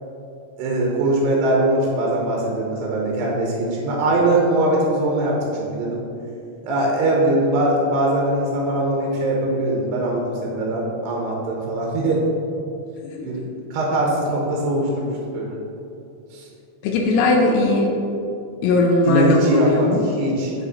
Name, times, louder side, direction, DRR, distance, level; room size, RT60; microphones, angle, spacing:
voice 1, 0.6-6.0 6.6-12.2 13.2-13.4 13.7-15.6 16.3-16.5 19.1-20.5, right 1 dB, 85° right, -2 dB, 3.1 m, -21 dB
voice 2, 16.8-17.9 18.6-20.0, left 2 dB, 90° left, 0 dB, 2.8 m, -18 dB
9.3 x 4.3 x 4.2 m, 2.7 s
omnidirectional pair, 4.8 m